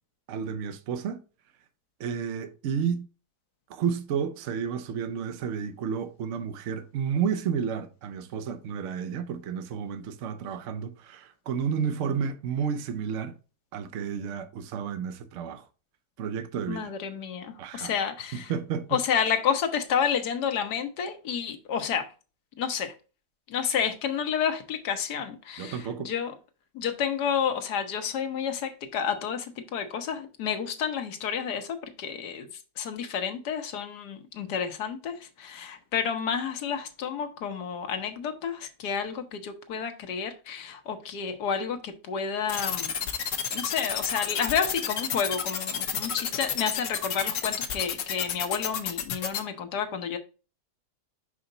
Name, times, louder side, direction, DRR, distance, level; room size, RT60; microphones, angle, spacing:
voice 1, 0.3-1.2 2.0-3.1 3.7-13.3 13.7-15.6 16.2-16.9 17.6-17.9 18.3-19.0 25.6-26.1, right 7 dB, 60° right, 0.9 m, -31 dB
voice 2, 16.7-18.5 18.9-22.1 22.6-22.9 23.5-26.3 26.7-32.5 32.8-42.9 43.5-50.2, left 7 dB, 80° left, 1.5 m, -30 dB
sound 1, 42.5-49.4, left 8 dB, 60° left, 1.0 m, -30 dB
5.4 x 4.9 x 3.8 m
omnidirectional pair, 1.7 m